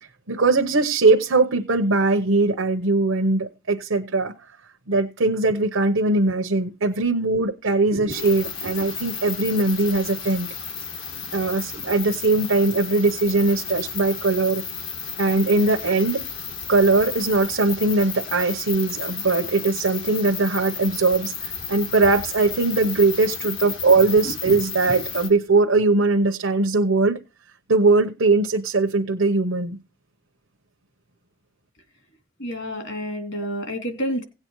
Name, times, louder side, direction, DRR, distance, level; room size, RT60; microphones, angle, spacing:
voice 1, 0.0-4.3 4.9-10.5 11.3-14.6 15.2-16.2 16.7-27.2 27.7-29.8, right 3 dB, 90° right, 2 dB, 1.0 m, -20 dB
voice 2, 7.9-8.3 8.6-8.7 24.4-24.6 32.4-34.2, equal, 65° left, 5 dB, 2.9 m, -29 dB
sound 1, 8.1-25.3, left 6 dB, 90° left, 3.0 m, -33 dB
17.5 x 8.8 x 3.1 m, 0.29 s
head